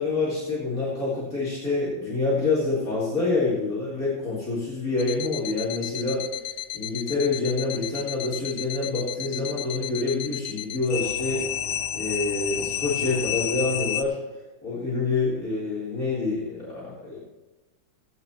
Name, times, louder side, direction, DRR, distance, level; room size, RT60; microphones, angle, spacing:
voice 1, 0.0-6.2 6.7-11.4 11.9-14.2 14.6-17.2, left 3 dB, 45° left, -7 dB, 4.4 m, -27 dB
sound 1, 5.0-14.0, left 11 dB, 90° left, 1.5 m, -31 dB
19.0 x 9.3 x 3.0 m, 1.1 s
omnidirectional pair, 2.1 m